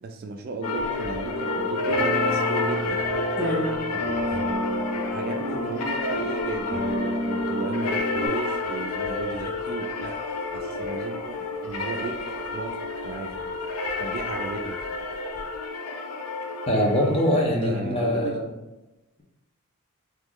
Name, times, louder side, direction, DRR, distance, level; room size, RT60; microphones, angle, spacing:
voice 1, 0.0-3.1 3.9-4.1 4.4-4.7 5.1-10.2 10.5-12.8 13.0-13.4 14.0-14.8 17.6-18.4, right 3 dB, 45° right, 4 dB, 0.3 m, -35 dB
sound 1, 0.6-17.4, left 3 dB, 90° left, 0.4 m, -30 dB
sound 2, 0.7-15.7, equal, ahead, 1.1 m, -42 dB
sound 3, 1.2-8.3, equal, 70° left, 0.9 m, -31 dB
voice 2, 16.7-18.5, equal, 25° left, -1 dB, 0.6 m, -23 dB
2.9 x 2.3 x 3.6 m, 1.0 s
head